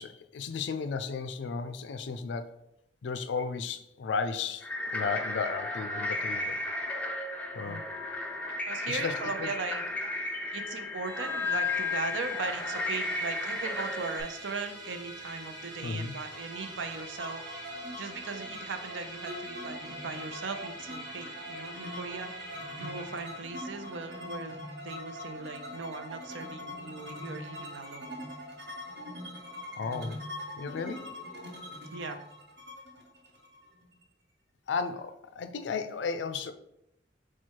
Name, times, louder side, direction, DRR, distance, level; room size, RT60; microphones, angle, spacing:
voice 1, 0.0-2.5 3.0-6.6 7.5-7.8 8.9-9.1 9.4-9.5 15.8-16.1 29.8-30.2 30.6-31.2 34.7-36.5, left 5 dB, 75° left, 9 dB, 0.4 m, -34 dB
sound 1, 4.6-14.2, left 2 dB, 5° left, 0.4 m, -34 dB
voice 2, 8.6-9.8 10.5-17.4 17.9-22.3 22.8-28.1 31.9-32.2, right 4 dB, 90° right, 7 dB, 0.5 m, -38 dB
Musical instrument, 11.1-26.6, right 1 dB, 20° right, 0.8 m, -45 dB
sound 2, 16.3-34.0, left 1 dB, 65° right, 1.0 m, -43 dB
4.3 x 2.3 x 4.5 m, 0.79 s
head